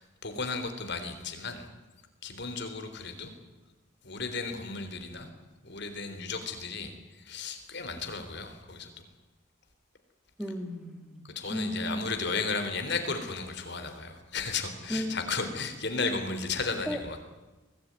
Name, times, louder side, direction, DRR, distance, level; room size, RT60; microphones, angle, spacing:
voice 1, 0.0-1.7 2.2-3.3 4.0-5.3 5.6-8.9 11.4-17.2, left 4 dB, 55° left, 7 dB, 3.7 m, -34 dB
voice 2, 10.4-11.2 11.5-12.1 14.9-15.3 16.9-17.0, equal, ahead, 5 dB, 2.2 m, -34 dB
24.0 x 19.0 x 9.6 m, 1.1 s
head